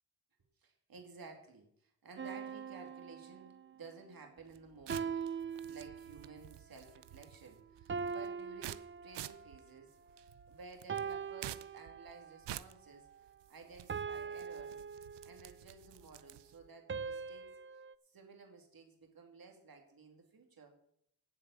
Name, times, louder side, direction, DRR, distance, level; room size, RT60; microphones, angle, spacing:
voice 1, 0.6-13.1 13.5-14.8 15.2-20.7, right 4 dB, 60° right, 2 dB, 2.7 m, -55 dB
sound 1, 2.2-3.8 4.9-6.4 7.9-9.6 10.9-12.4 13.9-15.6 16.9-17.9, right 6 dB, 30° right, 0.5 m, -42 dB
sound 2, 4.4-16.7, right 12 dB, 85° right, 0.6 m, -51 dB
9.4 x 7.6 x 8.4 m, 0.71 s
cardioid pair, 70°, 40 cm